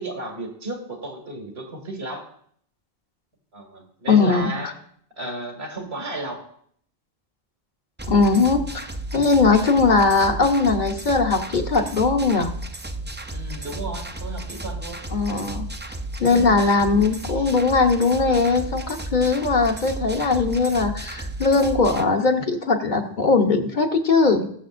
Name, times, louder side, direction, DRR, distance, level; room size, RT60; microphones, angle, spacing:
voice 1, 0.0-2.3 3.5-4.7 5.2-6.4 13.3-15.0 16.3-16.5 17.3-17.5, right 2 dB, 85° right, 2 dB, 2.3 m, -33 dB
voice 2, 4.1-4.7 8.1-8.9 9.1-12.5 15.1-15.7 16.2-24.5, left 4 dB, 50° left, 4 dB, 1.1 m, -20 dB
sound 1, 8.0-22.0, right 2 dB, 15° right, 0.3 m, -33 dB
20.5 x 6.9 x 2.5 m, 0.63 s
omnidirectional pair, 1.0 m